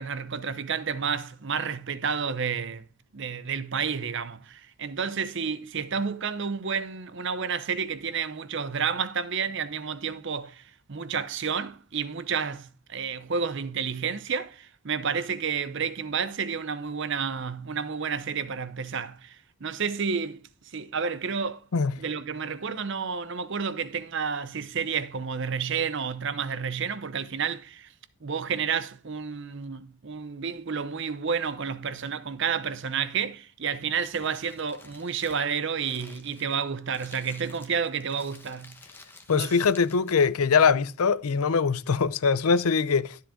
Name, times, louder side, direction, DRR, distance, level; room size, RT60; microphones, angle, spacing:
voice 1, 0.0-2.8 3.1-10.6 10.9-19.4 19.6-20.4 20.7-21.6 22.0-27.9 28.2-38.7 39.3-39.5, right 6 dB, 55° right, 0.7 m, -30 dB
Crumpling crinkling, 33.7-40.4, left 2 dB, 10° left, 1.0 m, -52 dB
voice 2, 39.3-43.2, left 5 dB, 80° left, 0.6 m, -22 dB
13.0 x 7.5 x 3.7 m
head